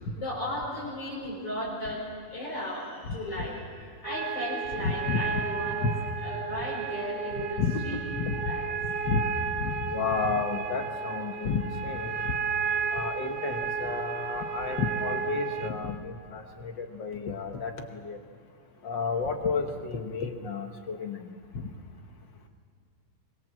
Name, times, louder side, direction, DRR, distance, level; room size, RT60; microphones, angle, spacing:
voice 1, 0.0-5.8 6.2-8.0 8.4-8.7, left 1 dB, 45° left, -7 dB, 5.7 m, -36 dB
sound 1, 4.0-15.7, right 5 dB, 85° right, 3.4 m, -33 dB
voice 2, 4.8-5.2 5.6-5.9 7.6-7.8 8.2-8.4 9.0-9.2 9.6-12.3 12.9-18.2 18.8-21.3 21.5-21.7, left 4 dB, 65° left, 5 dB, 1.1 m, -31 dB
24.5 x 22.0 x 7.6 m, 2.2 s
omnidirectional pair, 3.9 m